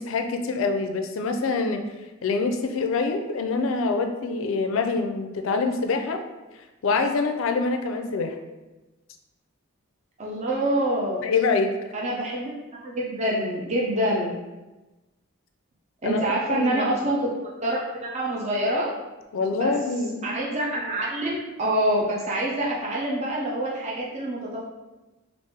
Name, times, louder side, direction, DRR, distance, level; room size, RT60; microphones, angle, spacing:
voice 1, 0.0-1.8 2.2-6.2 6.8-8.4 11.2-11.7 16.0-16.2 16.5-16.9 19.3-20.4, left 4 dB, 75° left, 6 dB, 0.4 m, -25 dB
voice 2, 10.2-11.2 11.9-12.5 12.8-14.4 16.0-17.3 17.6-18.9 19.5-19.7 20.2-24.6, right 1 dB, 35° right, -4 dB, 0.5 m, -26 dB
3.2 x 2.4 x 3.5 m, 1.1 s
head